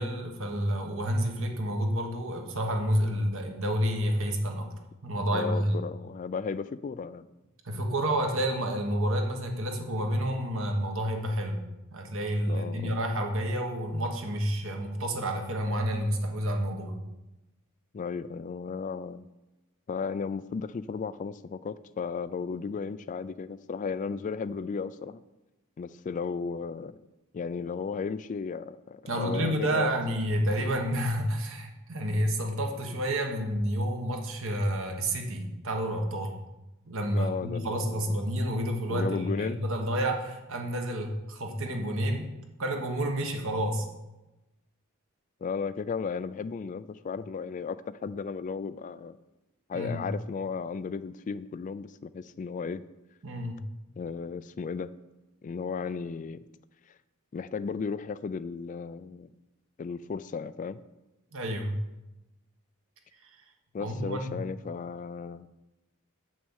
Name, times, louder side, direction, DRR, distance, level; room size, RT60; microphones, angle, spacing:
voice 1, 0.0-4.7 5.0-5.8 7.6-11.6 11.9-17.0 29.1-36.4 36.8-42.3 42.6-43.9 49.7-50.0 53.2-53.6 61.3-61.8 63.2-63.3 63.8-64.4, equal, 65° right, 3 dB, 1.4 m, -29 dB
voice 2, 5.3-7.3 12.5-13.0 17.9-19.3 19.9-25.2 25.8-27.0 27.3-29.9 37.1-38.2 38.9-39.6 45.4-49.2 49.7-52.8 54.0-54.9 55.4-56.4 57.3-59.3 59.8-60.8 63.7-65.5, left 5 dB, 35° left, 14 dB, 0.3 m, -35 dB
7.8 x 6.2 x 6.3 m, 1.0 s
head